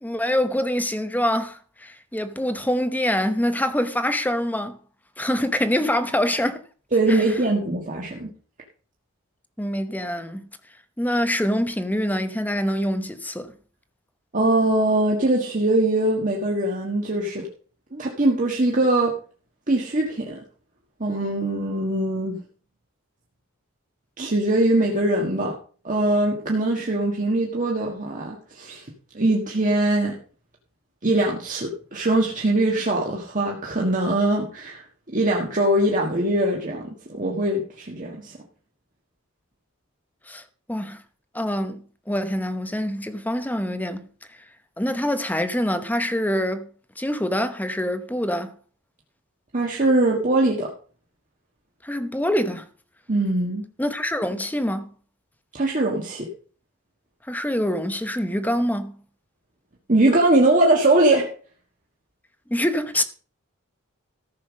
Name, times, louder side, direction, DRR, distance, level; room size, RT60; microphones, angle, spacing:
voice 1, 0.0-4.8 5.2-6.6 7.1-7.3 9.6-10.5 11.0-13.5 40.3-40.4 40.7-41.0 41.3-41.8 42.1-44.1 44.8-46.7 47.0-48.5 51.8-52.7 53.8-54.9 57.3-58.9 62.5-63.0, left 1 dB, 10° left, 0.9 m, -25 dB
voice 2, 6.9-8.3 14.3-17.5 17.9-19.2 19.7-20.4 21.0-22.4 24.2-25.5 25.8-28.8 29.1-30.1 31.0-34.8 35.1-38.3 49.5-50.7 53.1-53.6 55.5-56.3 59.9-61.3, right 2 dB, 40° right, 1.6 m, -22 dB
14.0 x 5.8 x 6.4 m
head